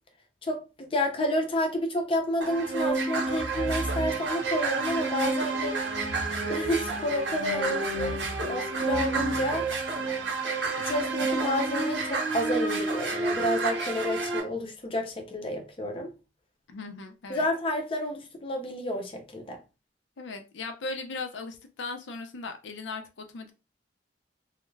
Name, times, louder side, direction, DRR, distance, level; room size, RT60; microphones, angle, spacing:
voice 1, 0.4-5.8 6.5-9.7 10.8-16.1 17.3-19.6, left 1 dB, 30° left, 0.5 m, -30 dB
sound 1, 2.4-14.4, right 3 dB, 85° right, 0.9 m, -29 dB
sound 2, 3.2-4.5 5.9-7.3 7.8-10.3, right 2 dB, 30° right, 0.4 m, -39 dB
voice 2, 16.7-17.5 20.2-23.5, left 3 dB, 85° left, 0.5 m, -38 dB
2.3 x 2.1 x 3.1 m
head